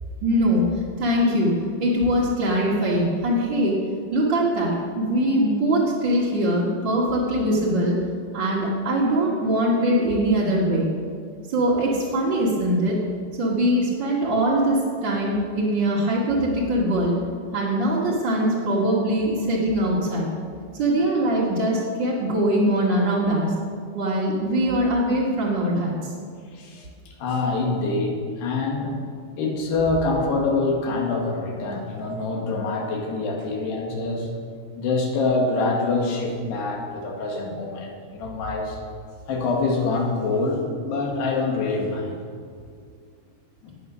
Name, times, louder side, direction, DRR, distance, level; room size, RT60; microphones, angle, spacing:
voice 1, 0.2-0.6 1.0-1.5 1.8-3.8 4.1-7.9 8.3-10.9 11.5-13.0 13.4-17.2 17.5-20.3 20.8-23.5 23.9-26.1, right 1 dB, 35° right, -7 dB, 2.0 m, -22 dB
voice 2, 26.5-26.9 27.2-29.0 29.4-34.3 34.8-38.8 39.3-42.1 43.6-43.8, left 3 dB, 85° left, 0 dB, 4.0 m, -25 dB
18.5 x 8.5 x 6.2 m, 2.2 s
omnidirectional pair, 4.7 m